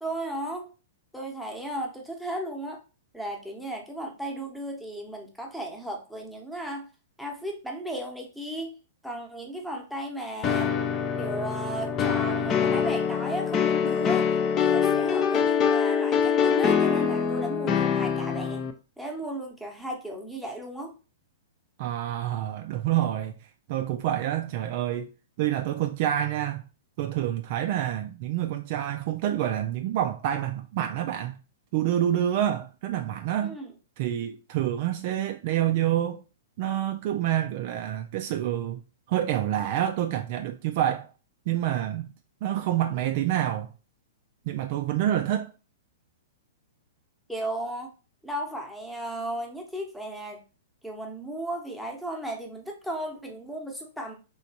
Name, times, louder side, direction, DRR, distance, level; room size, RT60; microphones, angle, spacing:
voice 1, 0.0-0.7 1.1-2.8 3.1-6.9 7.2-8.7 9.0-10.8 11.2-14.3 14.6-18.6 19.0-21.0 33.4-33.7 47.3-47.9 48.2-50.4 50.8-54.1, right 1 dB, ahead, 0.9 m, -35 dB
sound 1, 10.4-18.7, left 7 dB, 30° left, 0.5 m, -24 dB
voice 2, 21.8-23.3 23.7-25.1 25.4-26.6 27.0-31.4 31.7-33.6 34.0-36.2 36.6-38.8 39.1-41.1 41.5-42.1 42.4-43.7 44.5-45.5, right 11 dB, 50° right, 0.3 m, -27 dB
3.3 x 3.0 x 2.8 m
hypercardioid pair, 110°, 0 cm